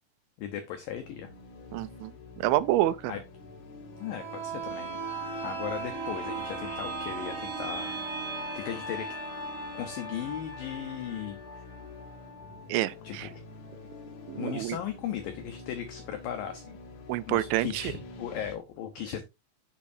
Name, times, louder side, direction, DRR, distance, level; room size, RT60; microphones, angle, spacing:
voice 1, 0.4-1.3 3.1-3.2 4.0-5.0 5.2-8.0 8.5-9.1 9.8-11.4 13.0-13.4 14.4-16.8 17.3-19.2, left 9 dB, 85° left, 2.0 m, -37 dB
sound 1, 1.0-18.6, left 3 dB, 65° left, 1.9 m, -48 dB
voice 2, 1.7-2.1 2.4-3.1 12.7-13.3 14.3-14.8 17.1-17.8, right 15 dB, 85° right, 2.9 m, -27 dB
sound 2, 4.0-13.6 14.0-14.1, right 3 dB, 25° right, 3.6 m, -38 dB
8.6 x 7.4 x 2.6 m
omnidirectional pair, 5.4 m